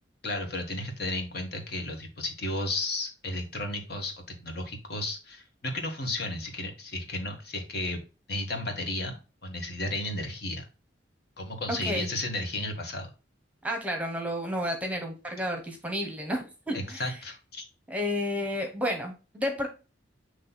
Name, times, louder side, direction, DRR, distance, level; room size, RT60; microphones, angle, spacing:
voice 1, 0.2-8.0 8.3-10.7 11.4-13.1 16.7-17.6, left 2 dB, 55° left, 3 dB, 1.5 m, -33 dB
voice 2, 11.7-12.1 13.6-17.1 17.9-19.7, equal, 10° right, 3 dB, 1.0 m, -31 dB
7.6 x 3.2 x 4.1 m, 0.31 s
head